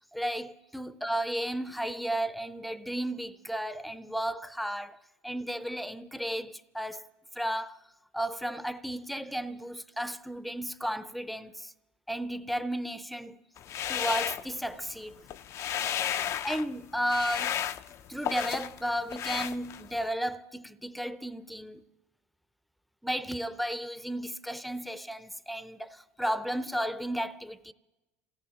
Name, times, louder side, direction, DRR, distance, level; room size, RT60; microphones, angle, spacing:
voice 1, 0.1-5.0 5.2-7.0 7.4-7.8 8.1-11.7 12.1-13.4 13.9-15.2 16.4-17.6 18.1-21.8 23.0-27.7, equal, ahead, 0.6 m, -33 dB
sound 1, 13.6-14.9 15.2-16.7 17.1-18.8 19.1-20.0, left 10 dB, 50° left, 0.5 m, -33 dB
27.0 x 17.0 x 2.9 m
supercardioid pair, 95°, 7 cm